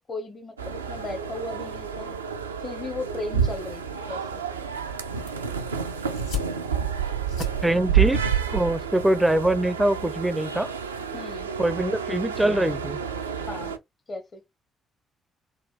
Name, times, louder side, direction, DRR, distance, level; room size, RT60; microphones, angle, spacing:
voice 1, 0.0-2.2 2.6-3.8 4.1-4.4 11.1-11.5 13.4-13.7 14.1-14.4, left 3 dB, 40° left, 0.8 m, -36 dB
sound 1, 0.6-13.8, right 7 dB, 90° right, 0.3 m, -29 dB
sound 2, 6.0-10.0, left 10 dB, 80° left, 1.4 m, -40 dB
voice 2, 7.6-8.2 8.5-10.7 11.6-13.0, right 1 dB, 10° right, 0.4 m, -23 dB
4.0 x 2.2 x 3.3 m
figure-of-eight pair, 45°, 0 cm